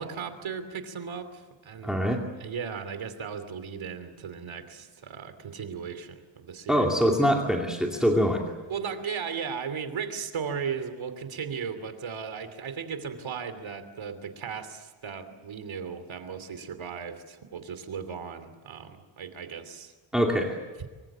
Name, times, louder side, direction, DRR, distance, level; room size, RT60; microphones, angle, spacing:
voice 1, 0.0-2.0 2.4-6.9 8.7-20.3, right 6 dB, 85° right, 10 dB, 2.9 m, -36 dB
voice 2, 1.8-2.2 6.7-8.4 20.1-20.6, equal, ahead, 0 dB, 2.4 m, -24 dB
25.0 x 24.5 x 7.4 m, 1.3 s
wide cardioid pair, 165°, 46 cm